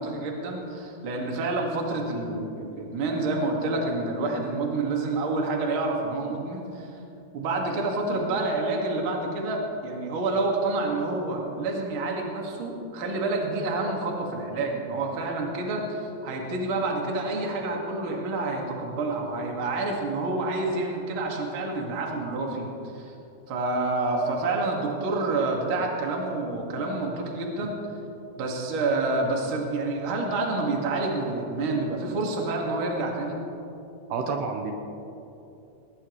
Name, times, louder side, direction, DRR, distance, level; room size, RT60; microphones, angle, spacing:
voice 1, 0.0-6.9 7.3-22.7 22.9-23.1 23.5-27.7 28.4-33.4, right 2 dB, 40° right, 0 dB, 1.9 m, -28 dB
voice 2, 34.1-34.7, right 4 dB, 75° right, 3 dB, 2.8 m, -29 dB
20.5 x 19.5 x 3.2 m, 2.8 s
omnidirectional pair, 5.0 m